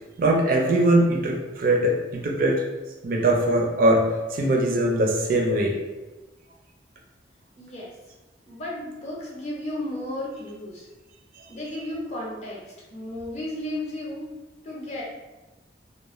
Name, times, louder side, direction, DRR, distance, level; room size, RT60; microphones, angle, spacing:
voice 1, 0.2-2.6 3.0-5.8, right 1 dB, 50° right, 1 dB, 0.4 m, -21 dB
voice 2, 7.6-7.9 8.5-10.9 11.5-12.6 12.9-14.3 14.6-15.0, left 1 dB, 40° left, -5 dB, 0.6 m, -33 dB
2.3 x 2.1 x 3.0 m, 1.1 s
head